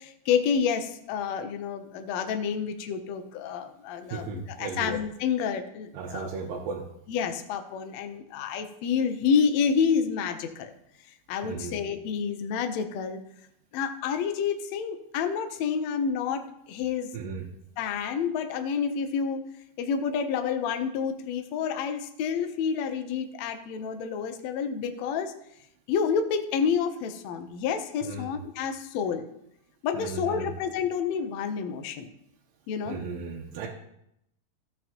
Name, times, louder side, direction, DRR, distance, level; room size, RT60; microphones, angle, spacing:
voice 1, 0.0-6.3 7.1-10.7 11.3-13.2 13.7-17.1 17.8-19.4 19.8-25.3 25.9-29.3 29.8-32.1 32.7-33.0, left 6 dB, 75° left, 7 dB, 1.6 m, -29 dB
voice 2, 4.1-4.9 5.9-6.8 11.4-11.7 17.1-17.5 28.0-28.3 29.9-30.5 32.9-33.7, right 5 dB, 85° right, -1 dB, 2.7 m, -35 dB
13.0 x 8.5 x 2.9 m, 0.77 s
omnidirectional pair, 4.0 m